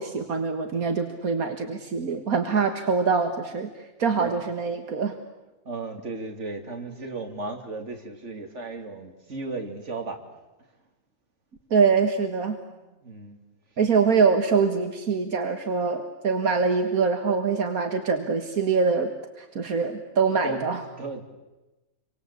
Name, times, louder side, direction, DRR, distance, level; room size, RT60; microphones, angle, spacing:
voice 1, 0.0-3.7 4.0-5.1 11.7-12.6 13.8-20.8, right 5 dB, 75° right, 6 dB, 2.1 m, -24 dB
voice 2, 5.6-10.2 12.4-13.4 20.4-21.2, right 3 dB, 55° right, 4 dB, 3.2 m, -36 dB
28.5 x 24.5 x 8.3 m, 1.1 s
omnidirectional pair, 1.5 m